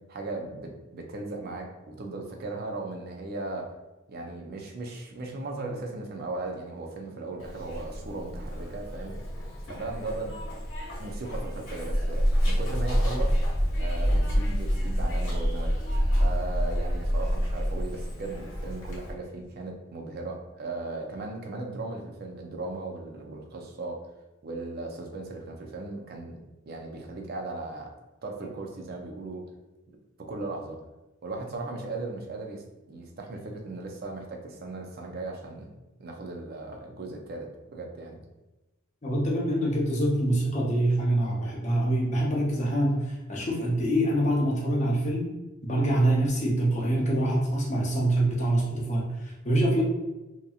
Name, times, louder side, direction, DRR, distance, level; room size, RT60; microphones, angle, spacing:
voice 1, 0.1-3.7 4.1-10.3 11.0-13.3 13.8-15.7 16.2-24.0 24.4-26.4 26.7-27.9 28.2-29.5 30.2-30.8 31.2-35.7 36.0-38.2, right 2 dB, 45° right, 2 dB, 0.4 m, -37 dB
Zipper (clothing), 7.4-19.1, equal, 65° left, 1.0 m, -28 dB
voice 2, 39.0-45.3 45.6-49.8, right 1 dB, 35° left, -2 dB, 0.6 m, -25 dB
2.8 x 2.5 x 2.3 m, 1.0 s
head